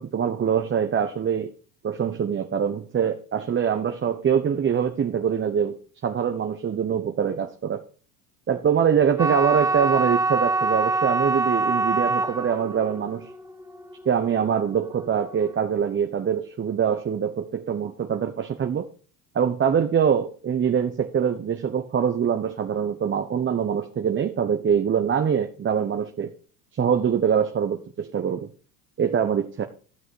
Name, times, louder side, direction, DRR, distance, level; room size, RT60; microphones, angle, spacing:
voice 1, 0.0-1.5 1.8-5.7 6.0-7.8 8.5-13.3 14.0-18.9 19.3-26.3 26.8-28.5 29.0-29.6, right 7 dB, 25° right, 6 dB, 1.0 m, -24 dB
sound 1, 9.2-15.3, right 3 dB, 5° right, 1.5 m, -25 dB
13.0 x 6.2 x 4.7 m, 0.39 s
hypercardioid pair, 85°, 44 cm